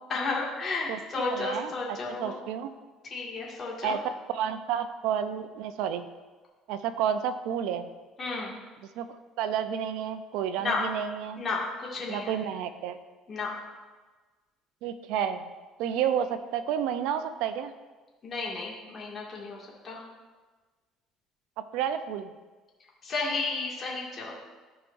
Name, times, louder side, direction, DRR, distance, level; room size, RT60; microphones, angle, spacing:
voice 1, 0.1-2.3 3.0-4.0 8.2-8.5 10.6-10.8 11.4-12.4 13.3-13.5 18.2-20.0 23.0-24.3, left 3 dB, 35° left, -3 dB, 2.1 m, -32 dB
voice 2, 0.9-2.7 3.8-6.1 6.7-7.9 9.0-9.1 9.4-11.4 12.1-13.0 14.8-15.5 15.8-17.7 21.7-22.3, right 8 dB, 80° right, 11 dB, 0.6 m, -31 dB
14.0 x 4.9 x 2.6 m, 1.3 s
cardioid pair, 110°, 0 cm